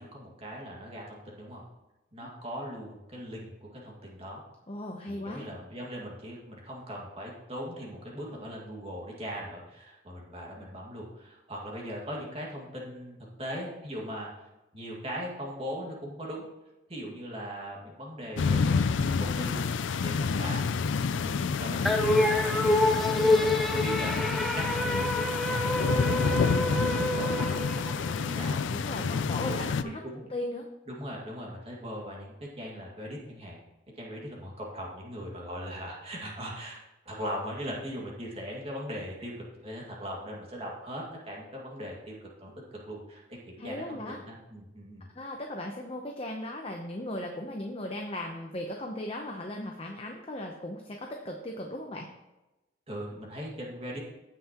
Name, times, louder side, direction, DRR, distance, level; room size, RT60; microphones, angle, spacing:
voice 1, 0.0-1.6 2.1-4.4 5.1-14.3 14.7-16.5 16.9-19.6 20.0-20.7 21.2-22.5 22.8-24.4 24.7-30.2 30.9-33.6 34.0-36.8 37.1-43.2 43.6-45.1 52.9-54.0, equal, 30° right, -2 dB, 2.0 m, -40 dB
voice 2, 4.7-5.5 23.2-23.3 28.7-30.7 43.6-44.2 45.2-52.1, left 1 dB, 30° left, 2 dB, 0.8 m, -37 dB
sound 1, 18.4-29.8, left 5 dB, 75° left, 0.4 m, -29 dB
sound 2, 21.9-28.4, left 1 dB, ahead, 0.6 m, -27 dB
16.0 x 5.7 x 3.0 m, 1.0 s
head